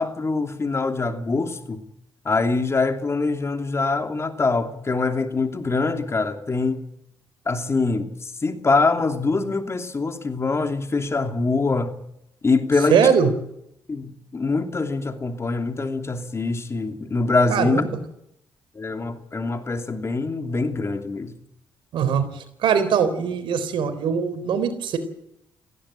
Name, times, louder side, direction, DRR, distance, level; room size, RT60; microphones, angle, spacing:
voice 1, 0.0-1.8 2.2-6.8 7.5-11.9 12.4-13.0 13.9-17.8 18.8-21.3, left 3 dB, 30° left, 2.8 m, -24 dB
voice 2, 12.9-13.3 17.5-18.0 21.9-22.2 22.6-25.0, right 7 dB, 75° right, 4.1 m, -21 dB
18.0 x 16.5 x 8.9 m
cardioid pair, 75°, 8 cm